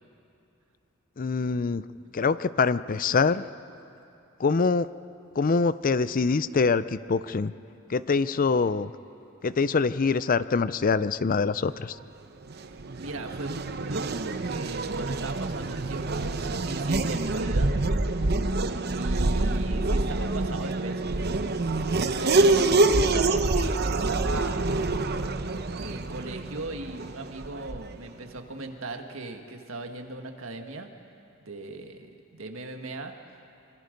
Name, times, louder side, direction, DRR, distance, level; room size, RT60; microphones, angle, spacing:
voice 1, 1.2-1.9 2.1-3.5 4.4-4.9 5.4-7.5 7.9-8.9 9.4-12.0, left 4 dB, 40° left, 15 dB, 0.5 m, -24 dB
Race car auto racing / Accelerating revving vroom, 12.4-28.0, right 2 dB, 50° right, 0.9 m, -26 dB
voice 2, 12.5-17.7 18.9-21.6 21.9-24.7 25.7-30.9 31.4-33.2, right 2 dB, 80° right, 4 dB, 1.7 m, -38 dB
25.5 x 25.0 x 5.3 m, 2.7 s
head